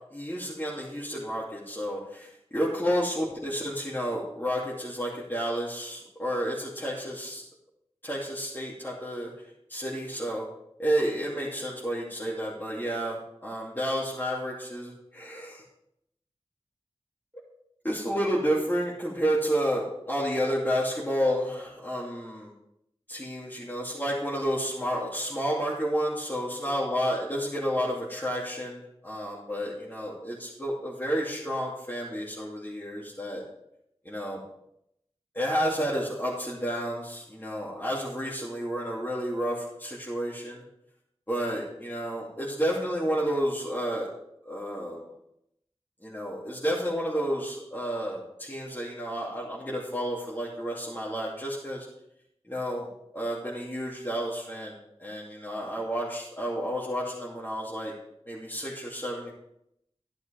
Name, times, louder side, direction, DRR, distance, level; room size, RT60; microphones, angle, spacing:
voice 1, 0.1-7.4 8.0-9.3 9.7-10.5 10.8-15.6 17.8-22.5 23.1-33.4 34.0-34.4 35.3-40.6 41.3-44.1 44.5-45.0 46.0-51.9 52.5-52.9 53.1-57.9 58.3-59.3, equal, 20° left, -7 dB, 2.7 m, -31 dB
13.0 x 10.5 x 3.5 m, 0.79 s
wide cardioid pair, 50°, 11 cm